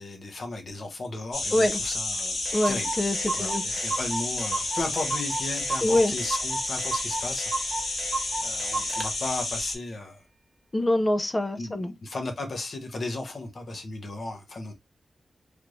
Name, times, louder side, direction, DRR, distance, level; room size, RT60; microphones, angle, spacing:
voice 1, 0.0-3.0 3.4-7.5 8.4-10.2 11.6-14.7, left 2 dB, 50° left, 0.8 m, -35 dB
sound 1, 1.3-9.7, left 2 dB, 75° left, 1.1 m, -31 dB
Clock, 1.9-2.0 2.2-2.3 2.5-9.1, right 3 dB, 45° right, 0.7 m, -34 dB
voice 2, 2.5-3.8 5.8-6.1 10.7-11.9, left 1 dB, 20° left, 0.4 m, -25 dB
3.3 x 2.5 x 2.9 m
wide cardioid pair, 175°, 0 cm